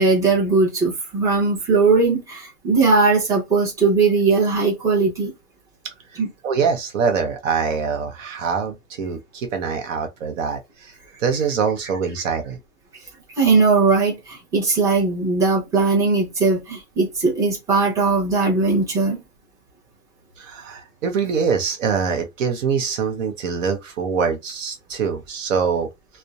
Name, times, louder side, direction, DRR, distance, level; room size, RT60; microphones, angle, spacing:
voice 1, 0.0-5.3 6.2-6.3 13.4-19.2, right 4 dB, 5° right, 0.6 m, -19 dB
voice 2, 6.4-10.9 11.2-12.6 20.4-25.9, right 6 dB, 55° right, 0.6 m, -24 dB
2.6 x 2.1 x 2.2 m
hypercardioid pair, 135°, 46 cm